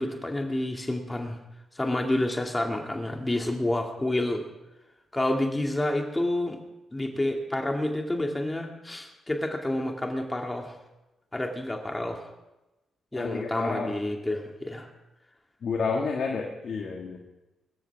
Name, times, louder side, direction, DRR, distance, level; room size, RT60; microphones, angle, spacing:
voice 1, 0.0-1.4 1.7-4.4 5.1-6.6 6.9-10.7 11.3-12.3 13.1-14.9, left 1 dB, 20° left, 2 dB, 2.4 m, -29 dB
voice 2, 13.1-13.9 15.6-17.2, left 4 dB, 60° left, 0 dB, 2.0 m, -30 dB
23.5 x 13.5 x 3.6 m, 0.99 s
hypercardioid pair, 45°, 0 cm